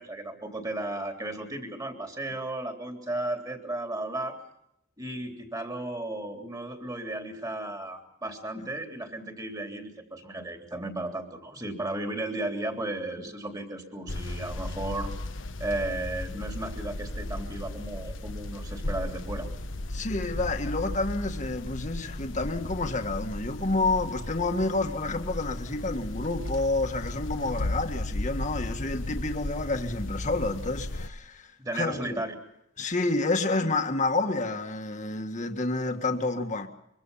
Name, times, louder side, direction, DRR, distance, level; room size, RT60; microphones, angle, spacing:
voice 1, 0.0-4.4 5.0-15.1 15.6-19.5 31.6-32.3, right 2 dB, 20° right, 3.5 m, -34 dB
sound 1, 14.1-31.1, left 1 dB, 85° left, 1.2 m, -35 dB
voice 2, 19.9-32.2 32.8-36.7, left 2 dB, 40° left, 1.7 m, -29 dB
24.5 x 24.0 x 5.6 m
head